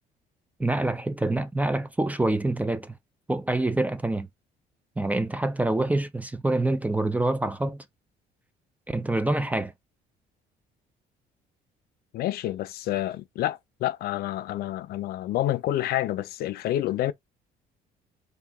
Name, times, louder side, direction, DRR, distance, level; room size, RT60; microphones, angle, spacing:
voice 1, 0.6-3.0 3.3-4.3 5.0-7.8 8.9-9.7, right 2 dB, 10° right, 0.3 m, -26 dB
voice 2, 12.1-17.1, left 14 dB, 65° left, 0.4 m, -28 dB
2.7 x 2.3 x 3.5 m
cardioid pair, 110°, 17 cm